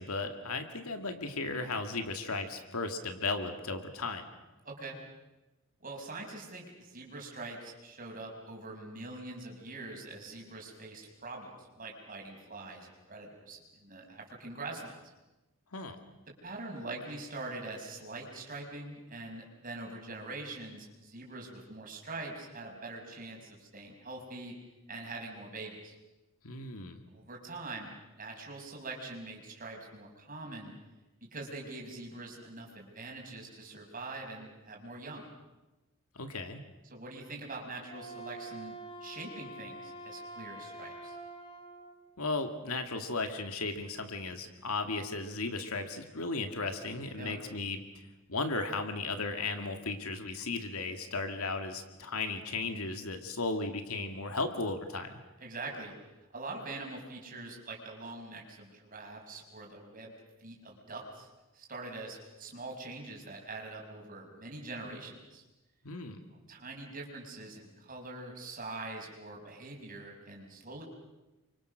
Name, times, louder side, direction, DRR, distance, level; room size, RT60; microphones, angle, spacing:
voice 1, 0.0-4.2 15.7-16.0 26.4-27.0 36.1-36.6 42.2-47.8 48.3-55.2 65.8-66.2, left 3 dB, 80° left, 6 dB, 2.3 m, -35 dB
voice 2, 4.6-5.0 5.8-15.0 16.4-24.5 24.9-25.9 27.1-30.7 31.3-35.3 36.9-41.2 47.2-47.4 55.4-55.9 56.3-60.1 60.4-61.3 61.5-65.4 66.5-70.8, right 2 dB, 40° right, 0 dB, 5.6 m, -44 dB
Wind instrument woodwind instrument, 37.8-42.0, right 1 dB, 25° left, 2.5 m, -46 dB
29.0 x 24.5 x 6.5 m, 1.1 s
head